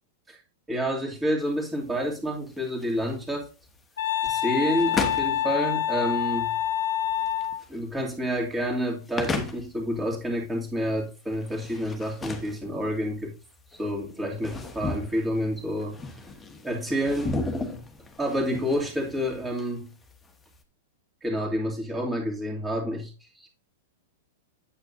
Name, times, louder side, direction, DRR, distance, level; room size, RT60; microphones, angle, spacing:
voice 1, 0.7-3.5 4.2-6.5 7.7-13.3 13.8-16.0 16.6-17.4 18.2-19.9 21.2-23.1 23.4-23.5, equal, 10° right, 2.6 m, -29 dB
sound 1, 1.4-20.6, left 3 dB, 15° left, 1.4 m, -37 dB
Wind instrument woodwind instrument, 4.0-7.6, left 11 dB, 65° left, 0.8 m, -27 dB
8.6 x 8.2 x 2.7 m
figure-of-eight pair, 100°, 0 cm